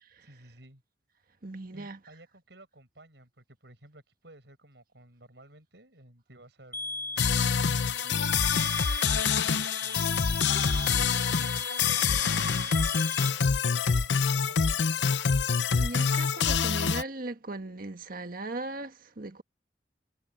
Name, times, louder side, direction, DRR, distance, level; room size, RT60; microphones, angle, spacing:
voice 1, 0.2-0.8 1.7-8.3 9.0-15.1, right 1 dB, 75° right, 6.8 m, -55 dB
voice 2, 1.4-2.0 15.7-19.4, right 2 dB, 55° right, 1.6 m, -38 dB
sound 1, 6.7-13.3, left 2 dB, 15° left, 4.3 m, -38 dB
sound 2, 7.2-17.0, left 6 dB, 85° left, 0.7 m, -26 dB
head